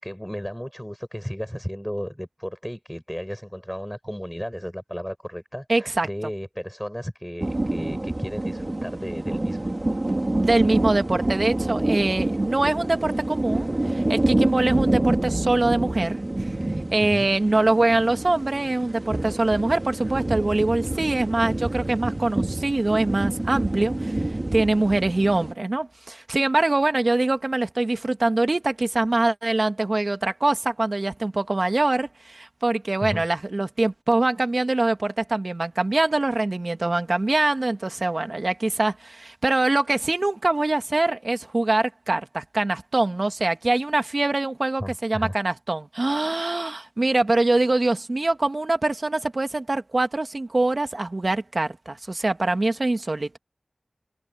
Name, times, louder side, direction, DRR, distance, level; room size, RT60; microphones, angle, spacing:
voice 1, 0.0-9.7 17.0-17.3 33.0-33.2 44.8-45.4, equal, ahead, 7.0 m, -34 dB
voice 2, 5.7-6.1 10.4-16.2 16.9-24.2 24.5-53.4, right 2 dB, 55° right, 1.8 m, -23 dB
sound 1, 7.4-25.5, right 1 dB, 40° right, 2.8 m, -27 dB
wide cardioid pair, 60°, 0 cm